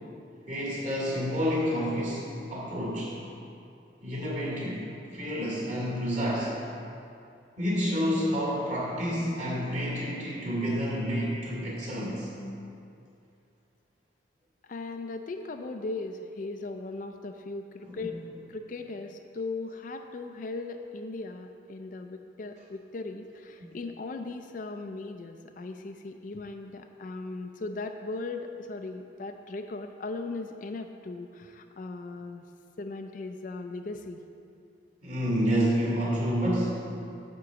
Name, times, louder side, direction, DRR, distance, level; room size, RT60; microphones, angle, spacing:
voice 1, 0.5-3.2 4.0-4.8 5.1-6.5 7.6-12.3 17.8-18.3 23.6-23.7 35.0-36.8, equal, 40° right, -6 dB, 2.3 m, -29 dB
voice 2, 14.6-18.2 18.5-32.4 32.8-34.2, left 3 dB, 45° left, 6 dB, 0.3 m, -38 dB
9.7 x 3.8 x 6.9 m, 2.5 s
head